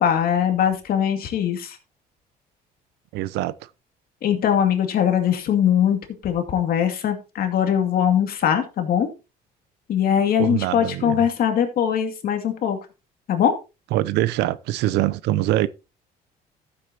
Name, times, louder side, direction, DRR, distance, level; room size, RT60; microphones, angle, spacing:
voice 1, 0.0-1.8 4.2-9.1 9.9-12.8 13.3-13.5, left 9 dB, 60° left, 2.3 m, -21 dB
voice 2, 3.1-3.7 10.4-11.3 13.9-15.7, right 15 dB, 90° right, 0.7 m, -23 dB
14.0 x 8.0 x 2.9 m
cardioid pair, 110°, 17 cm